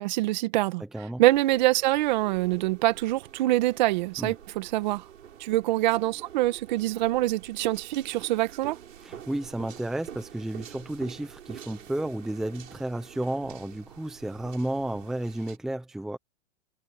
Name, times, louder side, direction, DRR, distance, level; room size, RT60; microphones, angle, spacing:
voice 1, 0.0-0.8 1.2-5.0 5.4-8.8, right 17 dB, 35° right, 1.6 m, -25 dB
voice 2, 0.8-1.2 4.2-4.3 9.0-16.2, right 1 dB, ahead, 0.9 m, -32 dB
sound 1, 1.3-15.6, right 9 dB, 80° right, 7.9 m, -47 dB
hypercardioid pair, 165°, 38 cm